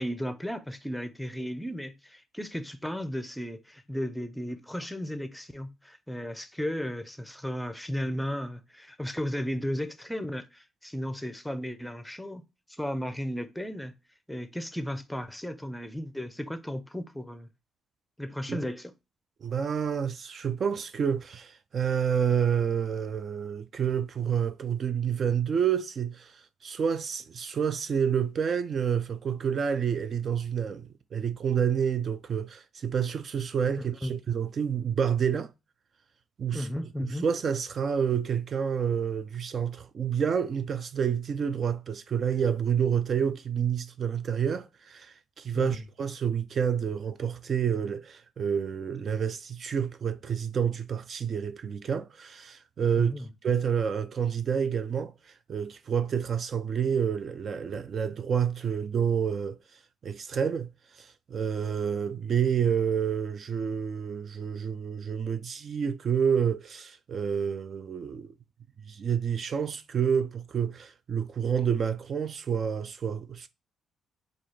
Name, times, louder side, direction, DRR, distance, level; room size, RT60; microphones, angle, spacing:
voice 1, 0.0-12.4 12.7-13.9 14.3-17.5 18.2-18.9 33.8-34.1 36.5-37.3 45.5-45.8 53.0-53.3, equal, 5° left, 0.6 m, -35 dB
voice 2, 19.4-35.5 36.4-36.7 37.0-53.1 53.4-59.6 60.0-68.3 68.9-73.5, right 7 dB, 50° right, 0.3 m, -29 dB
3.9 x 2.4 x 3.2 m
cardioid pair, 90°, 0 cm